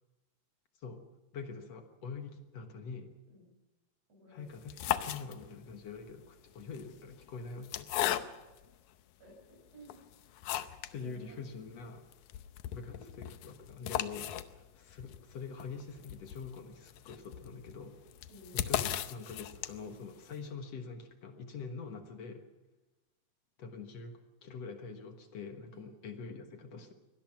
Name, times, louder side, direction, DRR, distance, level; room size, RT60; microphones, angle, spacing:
voice 1, 0.8-1.1 1.3-3.1 4.3-7.9 10.9-12.1 12.7-18.0 18.5-22.5 23.6-26.9, left 5 dB, 60° left, 5 dB, 2.4 m, -45 dB
voice 2, 4.1-4.5 8.0-8.3 9.2-10.0 11.0-11.4 18.3-18.5 25.7-25.9, right 1 dB, 55° right, 1 dB, 8.3 m, -56 dB
sound 1, 4.5-5.7 6.6-8.7 9.3-9.4 9.9-11.0 11.3-11.4 11.7-11.8 12.1-20.0, left 12 dB, 85° left, 2.2 m, -37 dB
24.0 x 18.5 x 6.0 m, 1.1 s
omnidirectional pair, 3.4 m